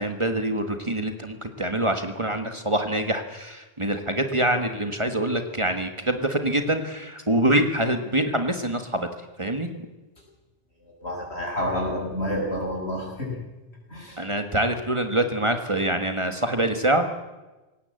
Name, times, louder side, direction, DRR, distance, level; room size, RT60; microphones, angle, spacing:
voice 1, 0.0-9.1 9.4-9.7 14.2-17.1, right 1 dB, 30° right, 7 dB, 1.6 m, -25 dB
voice 2, 10.8-13.4 13.9-14.2, equal, 80° left, -1 dB, 6.6 m, -29 dB
20.0 x 17.5 x 7.8 m, 1.1 s
omnidirectional pair, 1.1 m